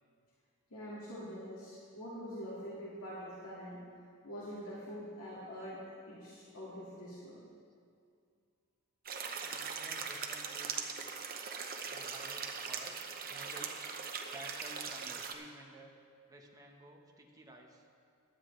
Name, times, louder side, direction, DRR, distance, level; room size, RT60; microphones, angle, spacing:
voice 1, 0.7-3.8 4.2-5.8 6.1-7.4, equal, 75° left, -8 dB, 2.2 m, -45 dB
sound 1, 9.1-15.3, right 6 dB, 45° right, 0.9 m, -40 dB
voice 2, 9.4-10.8 11.9-13.0 13.3-13.8 14.3-15.9 16.3-17.9, right 1 dB, 15° right, 0 dB, 1.2 m, -53 dB
16.0 x 11.0 x 3.3 m, 2.3 s
head